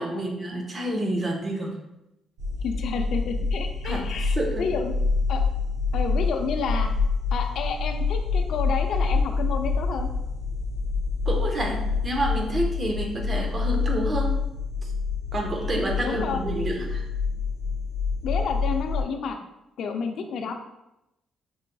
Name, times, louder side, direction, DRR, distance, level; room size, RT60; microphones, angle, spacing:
voice 1, 0.0-1.8 3.8-4.7 11.2-14.3 14.8-14.9 15.3-17.0, right 1 dB, 35° right, 2 dB, 0.8 m, -29 dB
sound 1, 2.4-19.0, left 4 dB, 85° right, 0.5 m, -27 dB
voice 2, 2.6-4.9 5.3-5.4 5.9-6.9 7.3-10.1 16.0-16.4 18.2-19.4 19.8-20.5, left 5 dB, 70° left, 5 dB, 0.4 m, -30 dB
5.5 x 2.5 x 2.2 m, 0.89 s
cardioid pair, 90°, 0 cm